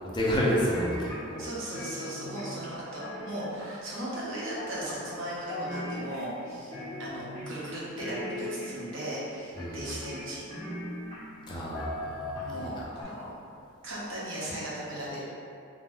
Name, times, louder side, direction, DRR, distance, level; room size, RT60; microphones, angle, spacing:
voice 1, 0.0-1.4 9.6-9.9 11.5-12.7, equal, 20° left, -5 dB, 0.4 m, -30 dB
sound 1, 0.7-1.5 1.7-3.9 4.6-5.2 5.5-6.4 6.7-7.6 8.0-9.0 9.6-11.4 11.7-12.7 13.0-13.1, left 1 dB, 35° right, 1.3 m, -38 dB
voice 2, 1.4-6.7 7.0-10.5 12.5-13.3 13.8-15.2, right 1 dB, 65° right, -8 dB, 0.8 m, -37 dB
2.6 x 2.0 x 3.3 m, 2.4 s
head